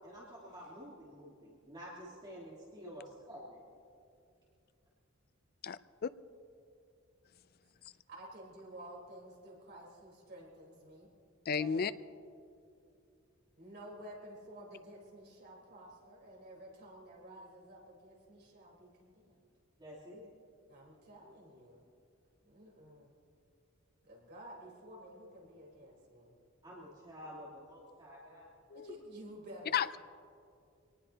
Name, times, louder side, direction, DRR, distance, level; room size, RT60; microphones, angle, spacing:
voice 1, 0.0-3.6 11.6-11.7 19.8-20.3 26.6-28.5, equal, 25° right, -6 dB, 3.2 m, -50 dB
voice 2, 5.6-6.1 11.5-11.9 28.7-28.9 29.7-30.0, left 7 dB, 50° left, 15 dB, 0.4 m, -33 dB
voice 3, 8.1-11.1 13.6-19.4 20.7-21.8 22.4-23.1 24.0-26.4 28.7-30.0, right 1 dB, 55° right, -3 dB, 4.1 m, -52 dB
26.0 x 19.0 x 2.9 m, 2.5 s
head